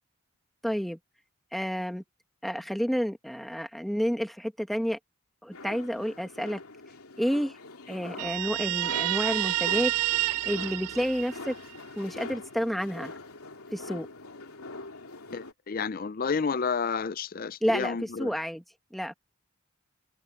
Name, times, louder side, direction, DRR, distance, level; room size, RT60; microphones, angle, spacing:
voice 1, 0.6-1.0 1.5-2.0 2.4-5.0 5.4-6.6 7.2-7.6 7.9-9.9 10.4-11.5 12.0-13.1 13.7-14.1 17.6-18.6 18.9-19.1, equal, ahead, 1.4 m, -30 dB
sound 1, 5.5-15.5, left 3 dB, 85° left, 2.8 m, -44 dB
Guitar, 8.2-11.8, right 16 dB, 90° right, 0.3 m, -29 dB
voice 2, 15.3-18.3, left 5 dB, 40° left, 0.5 m, -30 dB
head